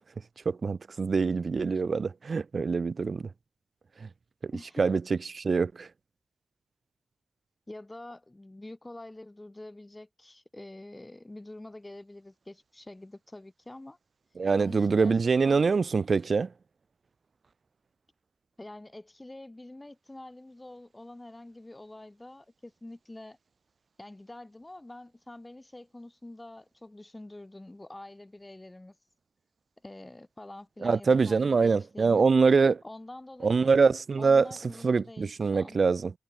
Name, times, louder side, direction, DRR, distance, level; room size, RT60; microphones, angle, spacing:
voice 1, 0.5-3.3 4.0-4.1 4.4-4.5 4.8-5.9 14.4-16.5 30.8-32.8 33.4-34.5 34.8-36.1, right 4 dB, 50° right, 2.0 m, -24 dB
voice 2, 4.5-4.9 7.7-14.0 14.6-15.2 15.4-15.7 18.6-23.4 24.0-28.9 29.8-32.2 32.8-33.7 34.2-35.8, left 1 dB, 15° left, 5.2 m, -46 dB
wide cardioid pair, 90°, 0 cm